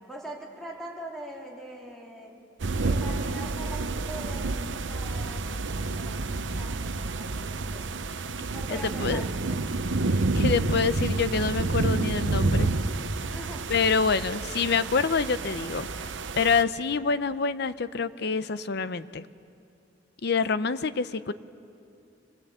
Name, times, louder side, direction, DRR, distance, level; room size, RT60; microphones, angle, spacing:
voice 1, 0.0-2.4 2.9-5.5 5.7-8.0 8.5-9.6 13.3-13.6, right 1 dB, ahead, -3 dB, 3.6 m, -42 dB
sound 1, 2.6-16.6, right 3 dB, 85° right, 0.8 m, -29 dB
voice 2, 8.7-9.2 10.3-12.7 13.7-19.3 20.2-21.3, left 5 dB, 65° left, 14 dB, 0.7 m, -26 dB
26.5 x 19.5 x 8.2 m, 2.6 s
head